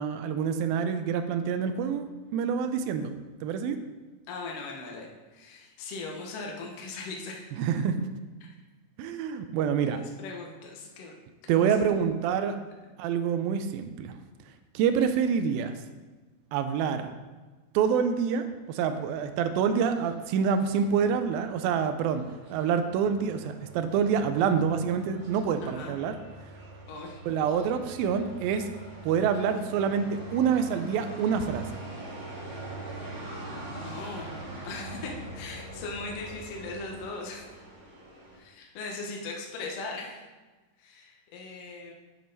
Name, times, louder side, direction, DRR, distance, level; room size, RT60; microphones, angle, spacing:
voice 1, 0.0-3.1 3.4-3.8 7.6-8.1 9.0-10.0 11.5-12.6 13.0-14.2 14.7-15.8 16.5-17.1 17.7-22.2 22.5-26.1 27.3-28.7 29.0-31.8, right 7 dB, 85° right, 8 dB, 2.1 m, -27 dB
voice 2, 4.3-7.5 9.9-11.7 25.6-25.9 26.9-27.2 33.8-37.6 38.3-40.2 40.8-41.9, left 3 dB, 85° left, 0 dB, 1.4 m, -39 dB
sound 1, 19.0-38.4, right 2 dB, 35° right, 2.1 m, -44 dB
7.6 x 7.3 x 4.0 m, 1.2 s
omnidirectional pair, 4.8 m